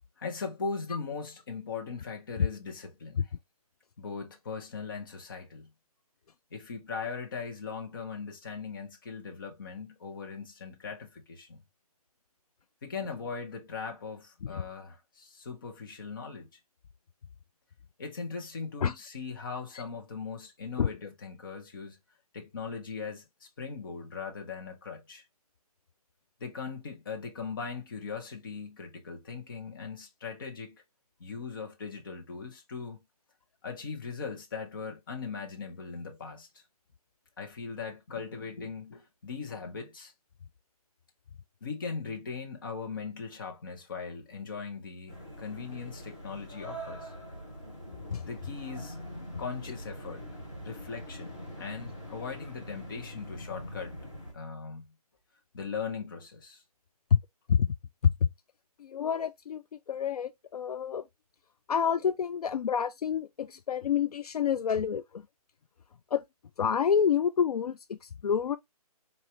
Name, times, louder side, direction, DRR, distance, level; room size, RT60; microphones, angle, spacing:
voice 1, 0.2-3.3 4.0-5.7 6.5-11.6 12.8-16.5 18.0-22.0 22.3-25.2 26.4-30.8 31.2-33.0 33.6-36.5 37.4-40.1 41.6-47.1 48.3-49.0 49.4-50.3 50.6-53.9 54.3-54.9 55.5-56.6, left 5 dB, 35° left, 1.0 m, -39 dB
sound 1, 45.1-54.3, equal, 5° left, 0.4 m, -43 dB
voice 2, 58.8-59.6 59.9-61.0 61.7-65.0 66.1-66.2 66.6-68.6, left 7 dB, 70° left, 0.4 m, -27 dB
4.5 x 2.9 x 2.9 m
hypercardioid pair, 165°, 20 cm